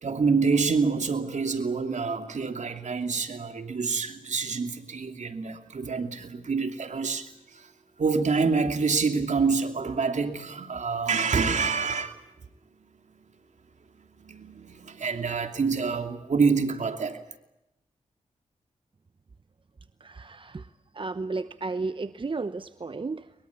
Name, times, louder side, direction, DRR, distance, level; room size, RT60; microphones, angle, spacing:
voice 1, 0.0-7.7 8.0-12.1 14.2-17.2, right 4 dB, 65° right, 7 dB, 2.7 m, -27 dB
voice 2, 20.0-23.3, right 3 dB, 40° right, 13 dB, 1.0 m, -33 dB
23.0 x 22.0 x 8.4 m, 0.90 s
cardioid pair, 45°, 13 cm